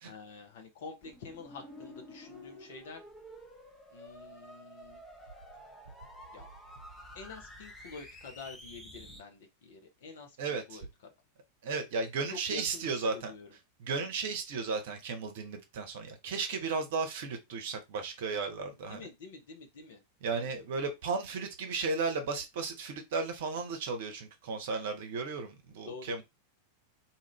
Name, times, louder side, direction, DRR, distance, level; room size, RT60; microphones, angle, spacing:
voice 1, 0.0-3.0 3.9-5.0 6.3-6.5 7.1-11.1 12.3-13.6 18.9-20.0 20.3-20.5 25.8-26.2, left 4 dB, 55° left, 0.8 m, -48 dB
sound 1, 1.0-9.2, left 1 dB, 10° left, 0.8 m, -50 dB
voice 2, 10.4-10.8 11.6-13.3 13.8-19.0 20.2-26.2, right 4 dB, 55° right, 0.8 m, -34 dB
2.8 x 2.5 x 3.0 m
figure-of-eight pair, 90°, 0 cm